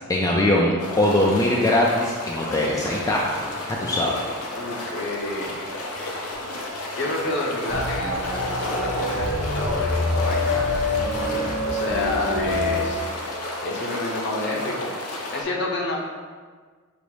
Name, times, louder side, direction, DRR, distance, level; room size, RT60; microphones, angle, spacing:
voice 1, 0.1-3.2 3.7-4.2, left 1 dB, 15° left, -3 dB, 0.3 m, -21 dB
sound 1, 0.8-15.4, left 1 dB, 90° left, 0.7 m, -32 dB
voice 2, 4.6-5.5 7.0-13.0 13.6-14.9 15.3-16.0, left 2 dB, 55° left, -1 dB, 0.8 m, -29 dB
sound 2, 7.7-12.8, left 2 dB, 60° right, 0.8 m, -26 dB
5.3 x 2.0 x 4.8 m, 1.5 s
head